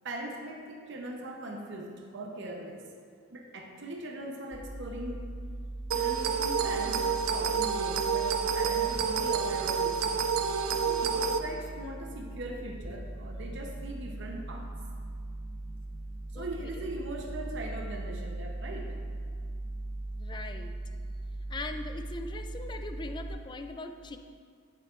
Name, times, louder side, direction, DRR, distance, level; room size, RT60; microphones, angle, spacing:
voice 1, 0.0-2.8 3.3-5.2 5.9-10.0 10.7-14.7 16.3-18.9, right 1 dB, 60° right, 1 dB, 0.8 m, -40 dB
sound 1, 4.5-23.3, right 2 dB, 5° right, 1.1 m, -40 dB
sound 2, 5.9-11.4, right 6 dB, 90° right, 0.4 m, -29 dB
voice 2, 16.3-16.8 20.2-20.7 21.5-24.2, left 2 dB, 20° left, 6 dB, 0.4 m, -40 dB
9.0 x 8.3 x 2.5 m, 2.1 s
head